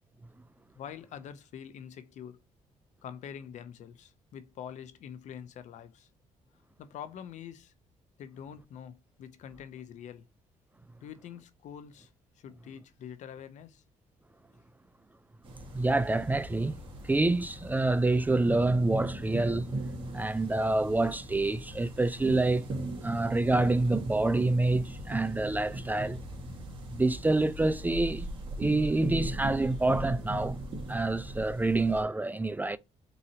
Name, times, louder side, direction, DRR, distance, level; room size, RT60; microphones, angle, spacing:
voice 1, 0.8-2.4 3.0-6.1 6.8-7.7 8.2-10.3 11.0-12.1 12.4-13.8, left 8 dB, 70° left, 0.6 m, -45 dB
sound 1, 15.4-32.0, right 1 dB, 40° right, 1.7 m, -38 dB
voice 2, 15.7-16.8 17.0-19.7 20.1-22.6 23.0-26.2 26.9-28.3 28.6-30.6 30.9-32.8, right 2 dB, 15° right, 0.4 m, -27 dB
4.2 x 3.8 x 2.8 m
cardioid pair, 105°, 13 cm